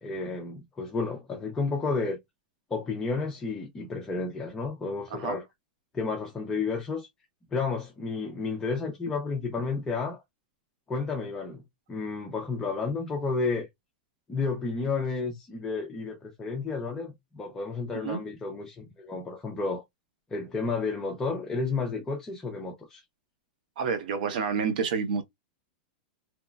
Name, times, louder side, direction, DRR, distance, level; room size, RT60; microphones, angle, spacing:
voice 1, 0.0-2.2 2.7-5.4 5.9-7.1 7.5-10.2 10.9-11.6 11.9-13.7 14.3-19.8 20.3-23.0, left 4 dB, 10° left, 0.4 m, -31 dB
voice 2, 23.8-25.2, right 6 dB, 60° right, 0.6 m, -29 dB
2.9 x 2.1 x 2.3 m
supercardioid pair, 170°, 5 cm